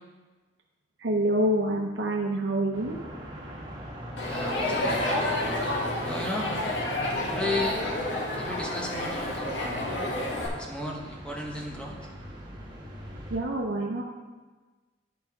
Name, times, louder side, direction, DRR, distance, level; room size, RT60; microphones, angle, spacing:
voice 1, 1.0-3.0 13.3-14.0, right 1 dB, 75° right, -1 dB, 0.7 m, -26 dB
sound 1, 2.7-13.4, equal, 25° right, 1.3 m, -42 dB
Crowd, 4.2-10.5, left 1 dB, 85° left, 1.6 m, -29 dB
voice 2, 4.2-5.4 6.0-6.5 7.0-7.8 8.3-9.8 10.6-12.1, left 1 dB, 5° left, -1 dB, 1.1 m, -34 dB
12.0 x 5.0 x 3.6 m, 1.3 s
head